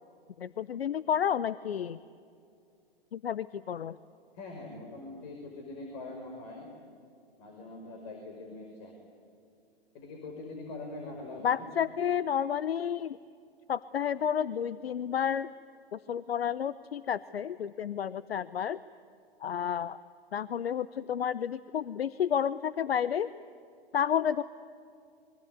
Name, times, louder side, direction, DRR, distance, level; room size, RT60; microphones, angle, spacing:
voice 1, 0.4-2.0 3.1-4.0 11.4-13.2 13.7-15.5 15.9-18.8 19.4-20.0 20.3-23.3 23.9-24.4, left 8 dB, 75° left, 17 dB, 0.7 m, -31 dB
voice 2, 4.3-6.7 7.4-8.9 9.9-11.6, left 2 dB, 45° left, 2 dB, 5.3 m, -43 dB
26.5 x 23.5 x 9.7 m, 2.4 s
hypercardioid pair, 115°, 30 cm